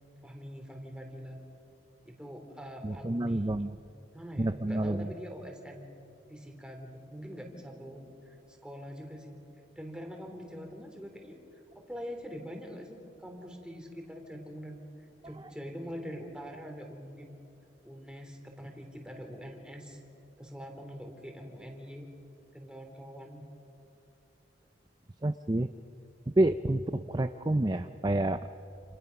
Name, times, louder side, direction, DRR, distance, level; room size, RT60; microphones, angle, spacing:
voice 1, 0.2-1.4 2.0-3.6 4.1-5.9 6.3-9.4 9.7-17.3 17.8-20.0 20.4-22.1 22.5-23.4, equal, 5° right, 2 dB, 3.0 m, -44 dB
voice 2, 2.8-3.7 4.4-5.0 25.2-25.7 26.4-28.4, right 1 dB, 25° right, 9 dB, 0.5 m, -28 dB
29.0 x 28.5 x 5.8 m, 2.7 s
head